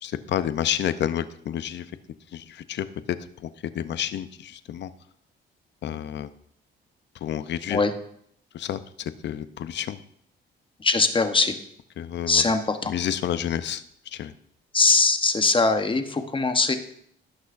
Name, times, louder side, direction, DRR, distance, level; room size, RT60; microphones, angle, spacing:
voice 1, 0.0-1.9 2.3-2.9 3.4-4.9 5.8-6.3 7.2-7.8 8.5-10.0 12.0-12.4 12.9-13.8 14.1-14.3, left 10 dB, 65° left, 13 dB, 0.6 m, -30 dB
voice 2, 10.8-11.5 12.3-12.9 14.7-16.8, left 3 dB, 25° left, 7 dB, 1.0 m, -21 dB
17.5 x 6.3 x 2.6 m, 0.69 s
cardioid pair, 90°, 20 cm